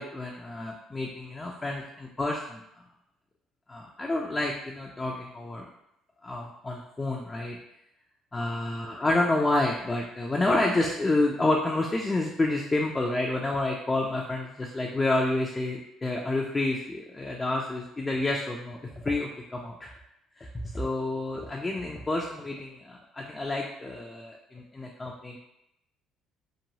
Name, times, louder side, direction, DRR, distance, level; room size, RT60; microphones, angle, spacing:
voice 1, 0.0-2.6 3.7-5.7 6.2-7.6 8.3-19.9 20.4-20.5 20.7-25.4, left 2 dB, 20° left, -1 dB, 0.3 m, -29 dB
2.9 x 2.2 x 2.7 m, 0.83 s
cardioid pair, 105°, 0 cm